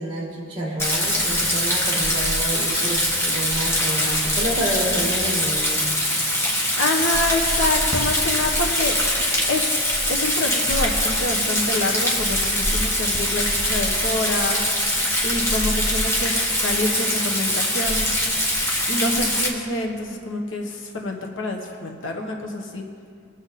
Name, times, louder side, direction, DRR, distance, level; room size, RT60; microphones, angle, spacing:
voice 1, 0.0-5.8, right 1 dB, 25° right, -3 dB, 1.9 m, -29 dB
Rain, 0.8-19.5, left 1 dB, 15° left, 1.4 m, -22 dB
voice 2, 4.6-5.0 6.8-9.8 10.1-14.6 15.2-18.1 18.9-22.8, left 2 dB, 80° left, 2 dB, 1.2 m, -27 dB
20.5 x 7.0 x 4.2 m, 2.2 s
head